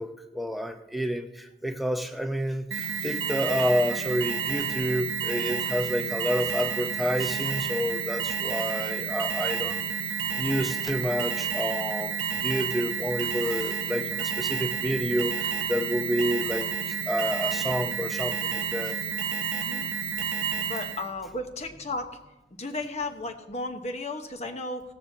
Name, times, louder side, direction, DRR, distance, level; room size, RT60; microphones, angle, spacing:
voice 1, 0.0-9.9 10.4-19.0, equal, ahead, 5 dB, 0.7 m, -29 dB
Alarm, 2.7-21.1, right 7 dB, 90° right, 0.8 m, -30 dB
voice 2, 19.5-19.9 20.7-22.1 22.6-24.9, left 2 dB, 35° left, 5 dB, 1.1 m, -34 dB
16.5 x 13.0 x 2.8 m, 0.99 s
head